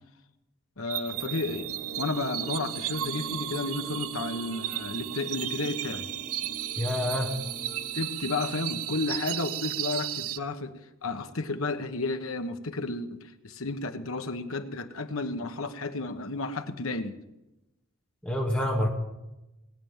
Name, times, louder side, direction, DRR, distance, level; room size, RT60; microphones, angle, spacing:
voice 1, 0.8-1.7 2.0-6.1 7.9-10.7 11.0-17.1, left 3 dB, 75° left, 8 dB, 1.2 m, -32 dB
sound 1, 0.9-10.4, right 13 dB, 80° right, 0.5 m, -34 dB
sound 2, 1.1-8.0, right 2 dB, 40° right, 3.2 m, -44 dB
voice 2, 6.8-7.3 18.2-18.9, left 1 dB, 5° left, -2 dB, 2.1 m, -27 dB
19.5 x 9.0 x 7.3 m, 0.98 s
head